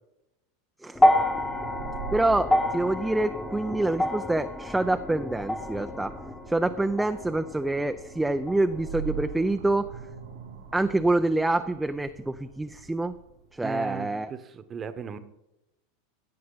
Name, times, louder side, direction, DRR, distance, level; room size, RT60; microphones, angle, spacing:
sound 1, 0.9-9.3 10.4-10.5, left 1 dB, 10° left, 1.1 m, -28 dB
sound 2, 1.0-13.5, right 8 dB, 85° right, 1.6 m, -43 dB
voice 1, 2.1-6.1 6.5-9.9 10.7-13.1 13.5-14.3, right 2 dB, 5° right, 8 dB, 0.5 m, -26 dB
voice 2, 13.6-15.2, right 7 dB, 30° right, 11 dB, 1.1 m, -36 dB
16.5 x 7.6 x 3.9 m, 0.89 s
hypercardioid pair, 95°, 0 cm